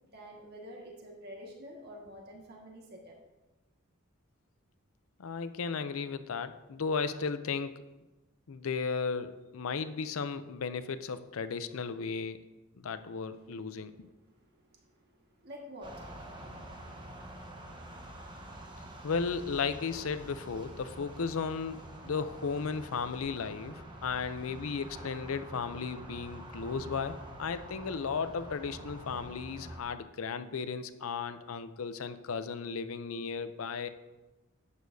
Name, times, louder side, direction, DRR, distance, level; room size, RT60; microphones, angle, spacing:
voice 1, 0.1-3.2 13.3-17.0, equal, 50° right, -1 dB, 1.7 m, -50 dB
voice 2, 5.2-7.8 8.5-12.5 12.8-14.1 19.0-33.9, left 5 dB, 85° left, 11 dB, 0.5 m, -35 dB
sound 1, 15.8-29.8, right 1 dB, 25° right, 1.0 m, -47 dB
11.0 x 8.2 x 2.7 m, 1.1 s
head